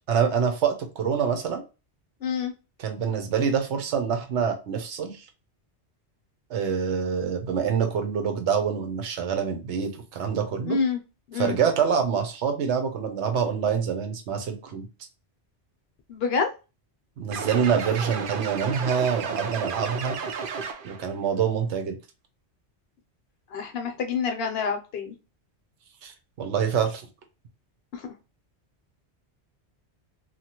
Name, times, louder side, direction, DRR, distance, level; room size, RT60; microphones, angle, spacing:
voice 1, 0.1-1.6 2.8-5.2 6.5-10.8 11.3-14.9 17.2-20.2 20.8-22.0 26.0-27.1, right 7 dB, 90° right, 6 dB, 1.0 m, -26 dB
voice 2, 2.2-2.5 10.7-11.0 11.3-11.6 16.1-16.5 23.5-25.1 27.9-28.1, left 5 dB, 70° left, 6 dB, 0.8 m, -27 dB
sound 1, 17.3-21.1, right 6 dB, 60° right, 0.6 m, -32 dB
2.9 x 2.3 x 2.8 m, 0.30 s
omnidirectional pair, 1.1 m